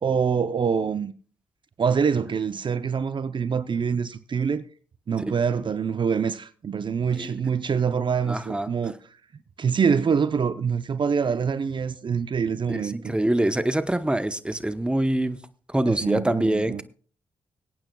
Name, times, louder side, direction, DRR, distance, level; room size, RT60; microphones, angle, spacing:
voice 1, 0.0-1.1 1.8-4.6 5.1-8.9 9.6-13.1 15.9-16.8, right 6 dB, 50° right, 0.7 m, -25 dB
voice 2, 8.3-8.7 12.7-15.4 15.7-16.8, right 1 dB, 10° right, 1.0 m, -25 dB
24.5 x 8.9 x 2.3 m
supercardioid pair, 50°, 11 cm